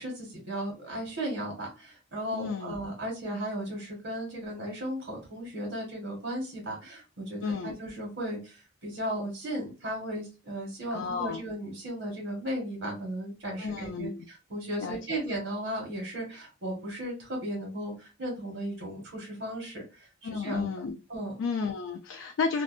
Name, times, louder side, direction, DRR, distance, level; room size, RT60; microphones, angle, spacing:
voice 1, 0.0-20.7 21.1-21.3, right 1 dB, 80° right, -1 dB, 1.2 m, -36 dB
voice 2, 2.3-2.8 7.4-7.8 10.9-11.4 13.6-14.3 14.8-15.2 20.2-21.0 21.4-22.6, left 5 dB, 75° left, 4 dB, 0.3 m, -32 dB
2.5 x 2.1 x 2.4 m, 0.31 s
head